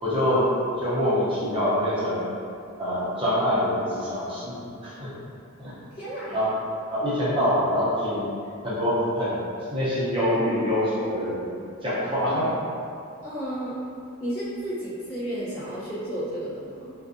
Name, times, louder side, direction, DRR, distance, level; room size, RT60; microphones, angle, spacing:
voice 1, 0.0-2.3 2.8-5.1 5.6-5.7 6.3-6.5 6.9-8.3 8.6-9.4 9.7-12.5, equal, 25° right, -10 dB, 0.5 m, -25 dB
voice 2, 5.9-6.4 12.3-12.4 13.2-13.8 14.2-16.9, right 1 dB, 65° left, -12 dB, 1.1 m, -32 dB
2.5 x 2.1 x 2.5 m, 2.5 s
head